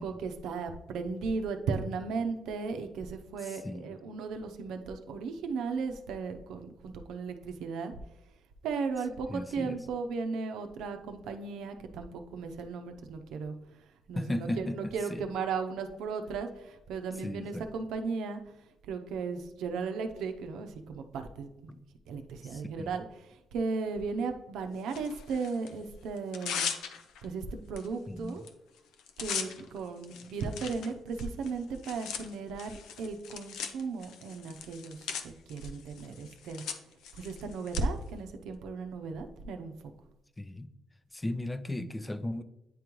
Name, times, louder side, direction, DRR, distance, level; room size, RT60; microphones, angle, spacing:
voice 1, 0.0-8.0 8.6-13.5 14.1-18.4 18.9-21.7 22.1-26.7 27.2-28.4 29.2-36.6 37.1-39.7, right 4 dB, 85° right, 6 dB, 0.6 m, -36 dB
voice 2, 9.3-9.8 14.2-15.2 17.2-17.7 21.7-21.8 22.5-22.9 28.1-28.4 40.4-40.7 41.1-42.4, left 1 dB, 15° left, 12 dB, 0.5 m, -36 dB
Tearing, 24.9-25.7 26.2-27.3 27.8-27.9 28.2-28.5 28.8-37.8, left 7 dB, 85° left, 0.5 m, -40 dB
9.1 x 3.7 x 3.0 m, 0.91 s
cardioid pair, 90°, 0 cm